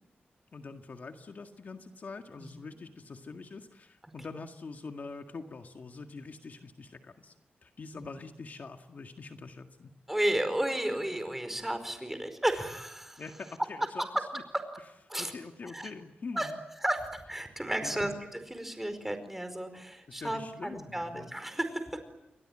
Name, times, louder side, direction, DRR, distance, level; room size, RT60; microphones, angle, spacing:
voice 1, 0.5-7.3 7.6-9.9 13.2-14.1 15.2-16.6 17.8-18.2 20.1-21.3, left 4 dB, 50° left, 5 dB, 1.9 m, -44 dB
voice 2, 10.1-13.2 14.5-14.6 15.1-15.3 15.6-15.9 16.3-16.5 16.8-21.9, right 1 dB, 10° right, 9 dB, 4.8 m, -33 dB
29.5 x 22.5 x 8.9 m, 0.86 s
wide cardioid pair, 125°, 4 cm